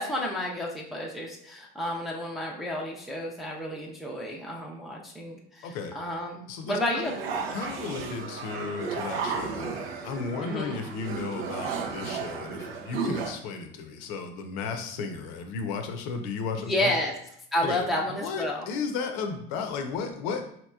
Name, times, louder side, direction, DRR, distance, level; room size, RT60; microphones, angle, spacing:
voice 1, 0.0-7.2 10.4-10.8 16.6-17.1 17.5-18.7, left 1 dB, ahead, -2 dB, 0.5 m, -31 dB
voice 2, 5.6-6.0 6.5-7.1 7.5-9.7 10.0-16.9 17.6-20.5, left 5 dB, 65° left, 6 dB, 0.7 m, -34 dB
sound 1, 7.0-13.3, right 5 dB, 90° right, 0.6 m, -34 dB
4.1 x 2.9 x 2.3 m, 0.71 s
supercardioid pair, 95°, 29 cm